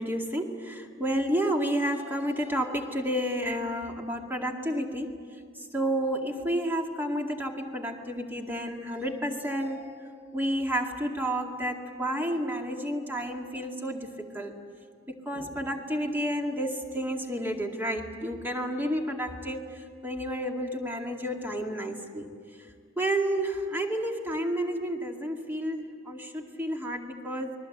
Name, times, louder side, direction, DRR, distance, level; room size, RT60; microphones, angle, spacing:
voice 1, 0.0-5.2 5.7-9.9 10.3-14.5 15.1-19.6 20.0-22.3 23.0-27.5, equal, 10° right, 2 dB, 2.2 m, -30 dB
28.5 x 22.0 x 8.0 m, 2.1 s
head